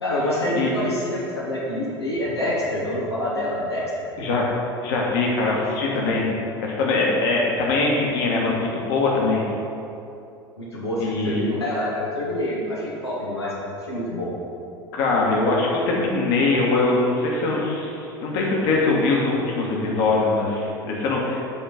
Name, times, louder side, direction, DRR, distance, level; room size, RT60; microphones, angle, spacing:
voice 1, 0.0-4.1 5.4-5.5 10.6-13.5 13.8-14.3, left 1 dB, 85° left, -7 dB, 1.1 m, -26 dB
voice 2, 4.2-4.5 4.8-6.3 6.6-9.4 11.0-11.4 14.9-21.4, left 3 dB, 60° left, -3 dB, 1.6 m, -22 dB
8.7 x 4.4 x 5.3 m, 2.7 s
figure-of-eight pair, 70°, 13 cm